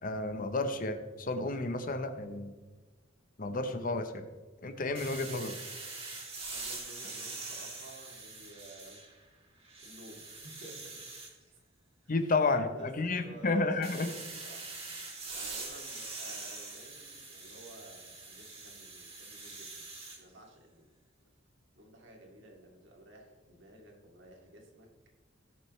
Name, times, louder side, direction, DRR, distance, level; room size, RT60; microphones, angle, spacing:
voice 1, 0.0-2.5 3.4-4.3 4.6-5.5 12.1-14.1, left 3 dB, 45° left, 8 dB, 0.8 m, -31 dB
sound 1, 4.9-9.2 9.6-11.3 13.8-20.2, right 3 dB, 30° right, 2.6 m, -44 dB
voice 2, 6.5-9.0 9.8-11.0 12.0-12.1 12.5-19.9 20.1-20.9 21.8-24.9, right 1 dB, 65° right, 0 dB, 2.4 m, -53 dB
17.5 x 6.6 x 3.2 m, 1.3 s
head